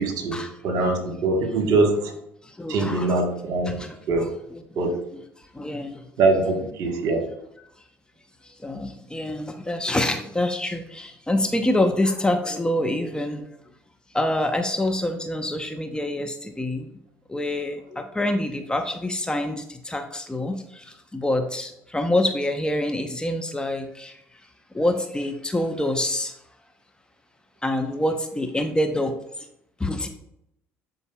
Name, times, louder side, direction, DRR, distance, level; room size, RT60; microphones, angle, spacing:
voice 1, 0.0-0.4 0.6-2.1 2.7-3.7 4.1-4.3 4.8-4.9 6.2-7.2, right 3 dB, 60° right, 3 dB, 1.4 m, -22 dB
voice 2, 2.4-3.2 3.7-4.0 4.5-4.6 5.1-5.2 5.5-6.1 8.4-13.4 14.1-16.9 17.3-24.2 24.7-26.3 27.6-29.2 29.8-30.1, left 1 dB, 10° left, 5 dB, 0.8 m, -26 dB
11.5 x 4.0 x 2.3 m, 0.77 s
hypercardioid pair, 60°, 7 cm